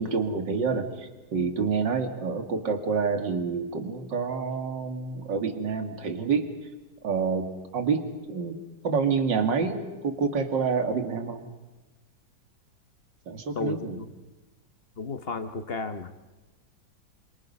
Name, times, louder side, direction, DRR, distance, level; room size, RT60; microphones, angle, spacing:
voice 1, 0.0-6.5 7.0-8.0 8.3-8.6 8.8-11.5 13.3-14.0, right 5 dB, 65° right, 6 dB, 2.7 m, -28 dB
voice 2, 13.5-14.0 15.0-16.3, left 4 dB, 35° left, 9 dB, 1.1 m, -33 dB
29.0 x 25.0 x 5.5 m, 1.2 s
omnidirectional pair, 2.2 m